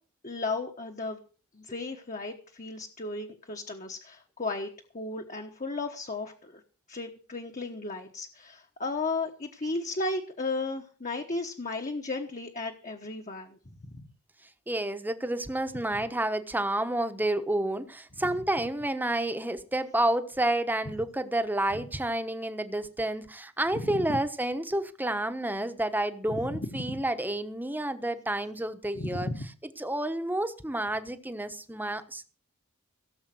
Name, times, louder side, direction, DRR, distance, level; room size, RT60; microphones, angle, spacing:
voice 1, 0.2-1.2 1.5-6.6 6.9-13.6 13.9-14.0 23.8-24.2 26.3-26.9 28.9-29.4, left 3 dB, 35° left, 3 dB, 1.3 m, -34 dB
voice 2, 14.7-29.3 29.8-32.2, right 1 dB, 10° right, 10 dB, 1.1 m, -30 dB
17.5 x 7.2 x 7.8 m, 0.39 s
head